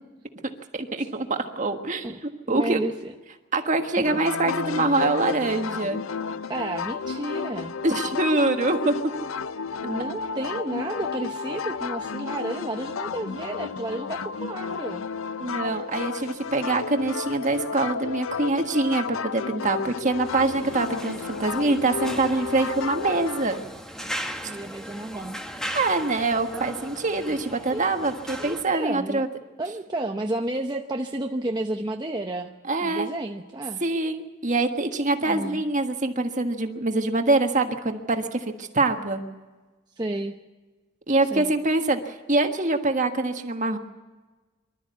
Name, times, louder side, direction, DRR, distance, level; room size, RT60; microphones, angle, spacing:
voice 1, 0.7-2.1 2.5-2.8 3.5-6.0 7.8-8.9 15.4-23.6 25.7-29.3 32.7-33.1 33.8-39.2 41.1-43.8, right 2 dB, 40° right, 5 dB, 1.5 m, -24 dB
voice 2, 2.5-3.1 4.0-4.1 6.5-7.8 9.8-15.0 24.4-25.4 27.7-27.9 28.4-29.2 29.6-32.5 32.8-33.8 35.2-35.6 40.0-40.3 41.3-41.5, right 1 dB, 20° right, 2 dB, 0.8 m, -31 dB
sound 1, 4.0-23.6, left 5 dB, 80° left, 0.6 m, -32 dB
sound 2, 20.2-28.6, equal, 5° left, 1.4 m, -37 dB
24.5 x 13.0 x 8.3 m, 1.2 s
head